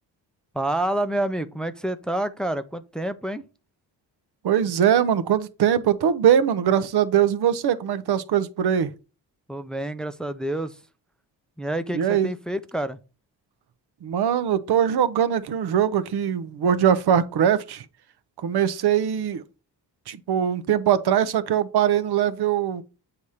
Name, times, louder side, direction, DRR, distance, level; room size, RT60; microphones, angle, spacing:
voice 1, 0.5-3.4 9.5-10.8 11.6-13.0, right 1 dB, ahead, 0.4 m, -28 dB
voice 2, 4.4-8.9 11.9-12.3 14.0-17.9 18.4-19.4 20.1-22.8, right 9 dB, 60° right, 0.7 m, -21 dB
7.9 x 2.9 x 4.8 m
cardioid pair, 90°, 43 cm